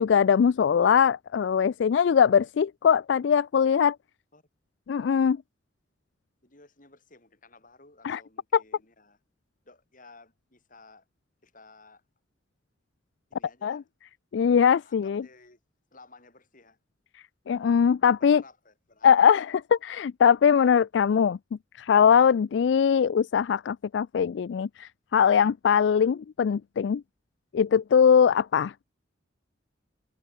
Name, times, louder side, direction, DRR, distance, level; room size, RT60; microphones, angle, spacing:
voice 1, 0.0-4.0 4.9-5.4 8.0-8.2 8.5-8.6 13.6-13.8 14.3-15.2 17.5-18.4 19.0-21.4 21.8-27.0 27.5-28.7, left 7 dB, 70° left, 0.3 m, -21 dB
voice 2, 6.4-9.2 9.6-11.1 11.4-12.0 13.3-13.9 14.8-15.6 15.9-16.8 18.2-19.2, left 3 dB, 45° left, 7.9 m, -55 dB
head